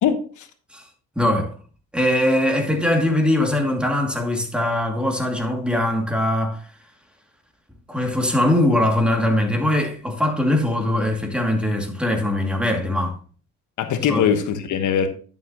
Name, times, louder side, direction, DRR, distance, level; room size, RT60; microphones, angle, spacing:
voice 1, 0.0-0.5 13.8-15.1, left 8 dB, 80° left, 1.2 m, -21 dB
voice 2, 1.2-1.5 1.9-6.6 7.9-13.2 14.1-14.2, left 1 dB, 5° right, 2.4 m, -21 dB
11.0 x 7.1 x 2.9 m
cardioid pair, 90°, 30 cm